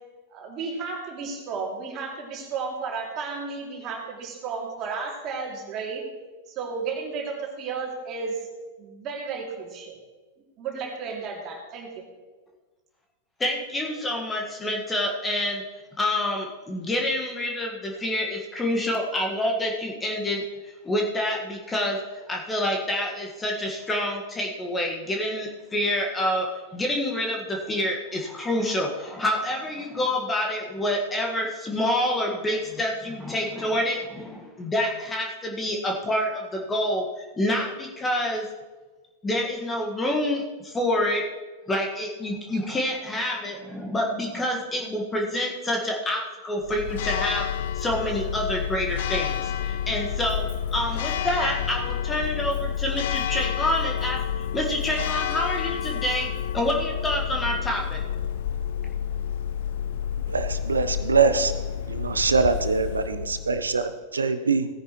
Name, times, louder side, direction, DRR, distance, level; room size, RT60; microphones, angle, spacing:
voice 1, 0.3-6.0 6.5-8.3 8.8-9.9 10.6-12.0, right 4 dB, 35° right, 0 dB, 2.7 m, -33 dB
voice 2, 13.4-15.6 16.0-22.0 22.3-26.5 26.7-38.4 39.2-41.2 41.7-47.4 47.7-50.4 50.7-54.2 54.5-56.3 56.5-58.0, left 1 dB, 15° left, 0 dB, 1.6 m, -27 dB
Church bell, 46.6-63.9, left 9 dB, 55° left, 0.5 m, -29 dB
voice 3, 60.3-61.5 61.9-64.7, right 4 dB, 80° right, 11 dB, 0.8 m, -23 dB
17.0 x 9.8 x 3.1 m, 1.3 s
figure-of-eight pair, 90°, 0 cm